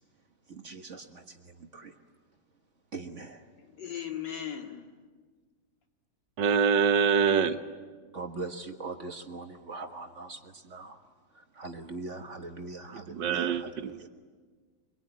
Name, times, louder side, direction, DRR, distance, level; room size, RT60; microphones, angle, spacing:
voice 1, 0.5-1.9 2.9-3.5 8.1-11.0 11.3-14.1, right 3 dB, 45° right, 1.7 m, -41 dB
voice 2, 3.6-4.9, left 9 dB, 75° left, 2.8 m, -38 dB
voice 3, 6.4-7.6 12.9-14.1, right 6 dB, 80° right, 1.7 m, -25 dB
26.5 x 23.0 x 9.5 m
omnidirectional pair, 1.9 m